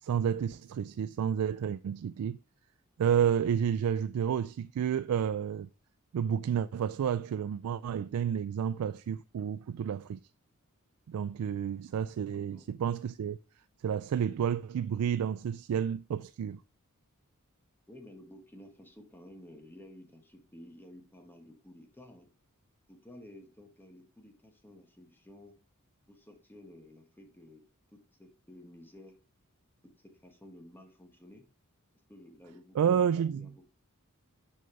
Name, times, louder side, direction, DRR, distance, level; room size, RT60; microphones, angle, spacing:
voice 1, 0.0-2.4 3.0-5.7 6.1-10.2 11.1-13.4 13.8-16.6 32.8-33.5, right 8 dB, 80° right, 0.3 m, -30 dB
voice 2, 12.3-12.7 17.9-22.3 22.9-25.6 26.1-29.2 29.8-31.5 32.1-33.0 33.3-33.7, left 1 dB, 10° left, 1.2 m, -53 dB
6.4 x 5.3 x 5.7 m
head